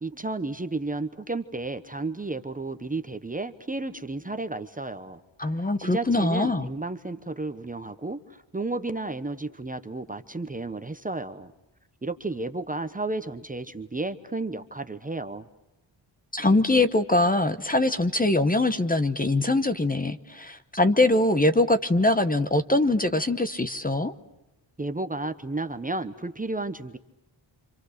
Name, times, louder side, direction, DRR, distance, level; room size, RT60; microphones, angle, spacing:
voice 1, 0.0-5.2 5.8-11.5 12.0-15.5 24.8-27.0, right 2 dB, 20° right, 9 dB, 0.9 m, -32 dB
voice 2, 5.4-6.7 16.3-24.1, left 2 dB, 20° left, 10 dB, 1.0 m, -23 dB
29.5 x 26.5 x 6.6 m, 0.91 s
wide cardioid pair, 155°, 45 cm